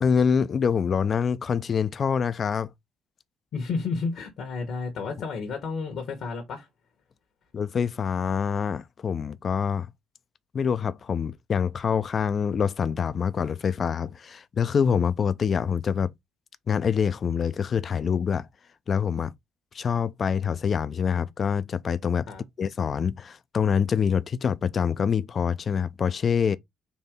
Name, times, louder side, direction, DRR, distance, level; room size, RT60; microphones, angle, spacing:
voice 1, 0.0-2.7 7.5-9.9 10.5-16.1 16.7-18.5 18.9-19.3 19.7-22.3 22.6-26.6, left 7 dB, 45° left, 0.4 m, -25 dB
voice 2, 3.5-6.7 22.3-22.4, left 4 dB, 65° left, 1.1 m, -31 dB
4.2 x 2.7 x 3.6 m
hypercardioid pair, 60°, 0 cm